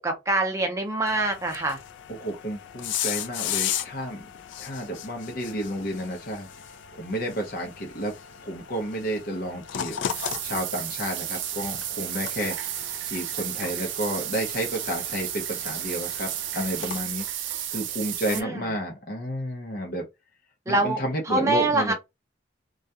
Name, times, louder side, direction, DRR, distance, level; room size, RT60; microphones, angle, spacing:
voice 1, 0.0-1.8 18.3-18.7 20.7-21.9, right 2 dB, 15° right, 0.6 m, -25 dB
sound 1, 1.1-17.0, left 9 dB, 80° left, 0.3 m, -37 dB
voice 2, 2.1-4.3 4.6-6.5 6.9-8.1 8.4-10.0 10.4-12.6 13.0-20.0 20.7-21.9, equal, 50° left, 0.6 m, -31 dB
sound 2, 10.1-18.4, right 11 dB, 85° right, 0.4 m, -33 dB
2.3 x 2.2 x 2.7 m
head